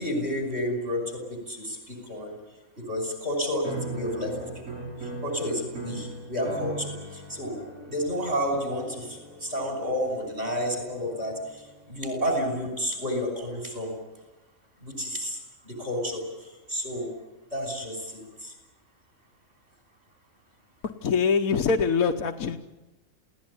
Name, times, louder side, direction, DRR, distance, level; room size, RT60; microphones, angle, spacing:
voice 1, 0.0-2.3 2.8-4.6 5.0-7.6 7.9-13.9 14.8-15.4 15.6-17.1 17.5-18.5, equal, 45° right, 3 dB, 6.0 m, -31 dB
sound 1, 3.6-11.9, right 2 dB, 80° right, 5.5 m, -40 dB
voice 2, 21.0-22.6, left 5 dB, 75° left, 4 dB, 1.5 m, -23 dB
28.0 x 17.5 x 9.9 m, 1.1 s
omnidirectional pair, 1.5 m